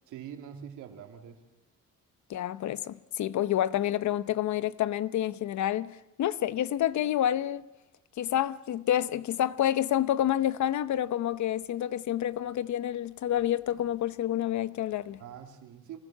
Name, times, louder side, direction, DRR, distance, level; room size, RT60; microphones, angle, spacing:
voice 1, 0.1-1.4 15.2-16.0, right 9 dB, 90° right, 2.8 m, -44 dB
voice 2, 2.3-7.7 8.2-15.2, left 11 dB, 70° left, 0.9 m, -28 dB
26.0 x 20.0 x 7.5 m
cardioid pair, 90°, 30 cm